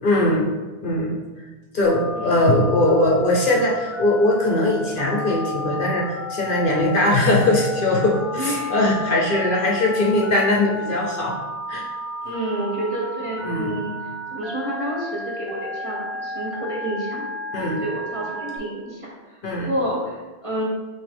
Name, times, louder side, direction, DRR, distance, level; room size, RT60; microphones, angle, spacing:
voice 1, 0.0-0.5 0.8-1.2 1.7-11.4 11.7-11.9 13.4-13.7 17.5-17.8 19.4-19.7, left 1 dB, 55° left, -2 dB, 0.8 m, -20 dB
Telephone, 1.8-18.6, left 1 dB, ahead, 0.9 m, -33 dB
voice 2, 2.2-2.5 8.3-8.7 12.2-14.0 14.3-17.3 17.6-20.6, right 1 dB, 35° right, -4 dB, 0.8 m, -29 dB
5.9 x 2.6 x 3.4 m, 1.3 s
omnidirectional pair, 1.2 m